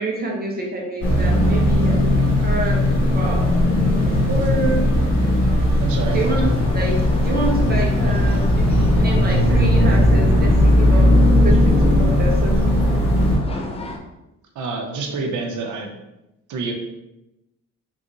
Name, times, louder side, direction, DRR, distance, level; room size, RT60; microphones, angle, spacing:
voice 1, 0.0-2.1 2.4-2.8 3.1-3.7 4.0-4.9 6.1-11.1 11.4-13.0, right 2 dB, 30° right, -1 dB, 1.2 m, -27 dB
sound 1, 1.0-13.4, left 1 dB, 75° left, 1.5 m, -17 dB
voice 2, 5.8-6.2 14.5-15.9 16.5-16.7, right 4 dB, 75° right, 2 dB, 0.8 m, -27 dB
sound 2, 6.1-14.0, left 2 dB, 20° left, 0.6 m, -33 dB
3.9 x 3.7 x 3.0 m, 0.93 s
cardioid pair, 90°, 30 cm